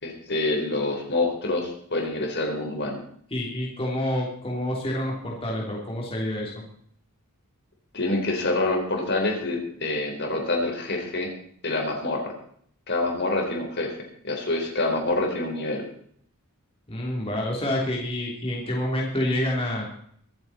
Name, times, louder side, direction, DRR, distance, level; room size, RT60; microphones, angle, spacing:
voice 1, 0.0-3.0 7.9-11.3 11.6-12.3 12.9-13.9 14.2-15.9, left 2 dB, 50° left, 1 dB, 4.1 m, -26 dB
voice 2, 3.3-6.5 16.9-19.9, left 1 dB, 25° left, -2 dB, 3.3 m, -28 dB
24.5 x 9.1 x 4.3 m, 0.63 s
head